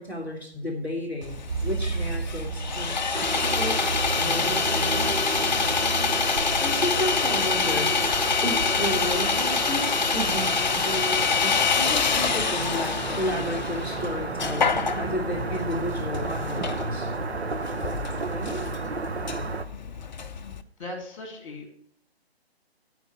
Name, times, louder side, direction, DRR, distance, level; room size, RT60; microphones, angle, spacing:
voice 1, 0.0-3.8 4.2-5.3 6.6-7.9 8.4-17.1 18.3-18.6, equal, 5° right, -10 dB, 1.5 m, -32 dB
Sawing, 1.2-20.6, left 5 dB, 45° left, 0.5 m, -27 dB
sound 1, 1.5-10.8, right 4 dB, 50° right, 1.0 m, -34 dB
sound 2, 3.1-19.6, right 3 dB, 80° right, 0.8 m, -32 dB
voice 2, 20.8-21.8, left 1 dB, 30° left, 3 dB, 2.1 m, -38 dB
8.9 x 4.7 x 6.9 m, 0.65 s
figure-of-eight pair, 140°, 32 cm